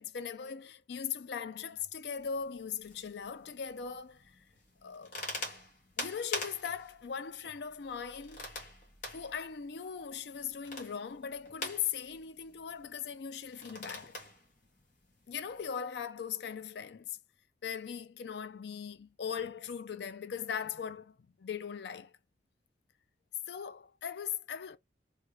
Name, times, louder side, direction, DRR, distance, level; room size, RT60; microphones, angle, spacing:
voice 1, 0.0-4.4 4.8-5.2 6.0-8.5 9.1-14.2 15.3-17.2 17.6-22.1 23.5-24.8, left 7 dB, 70° left, 0.4 m, -39 dB
sound 1, 2.2-15.7, left 2 dB, 45° left, 1.4 m, -46 dB
3.3 x 2.5 x 3.1 m
head